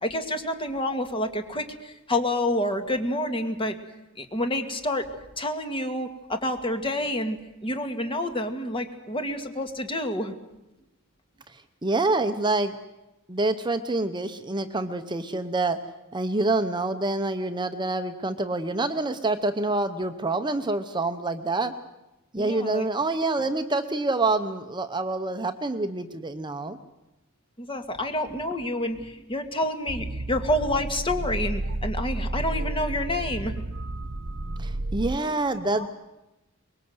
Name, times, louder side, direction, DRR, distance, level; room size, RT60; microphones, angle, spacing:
voice 1, 0.0-3.8 4.2-5.1 5.4-10.3 22.4-22.9 27.6-33.5 35.8-35.9, left 1 dB, 25° left, 6 dB, 2.0 m, -28 dB
voice 2, 11.5-12.8 13.3-15.8 16.1-21.7 22.3-26.8 34.6-35.9, right 2 dB, 20° right, 8 dB, 0.9 m, -27 dB
sound 1, 29.9-35.2, right 2 dB, 90° right, 0.9 m, -31 dB
24.0 x 21.5 x 7.9 m, 0.98 s
head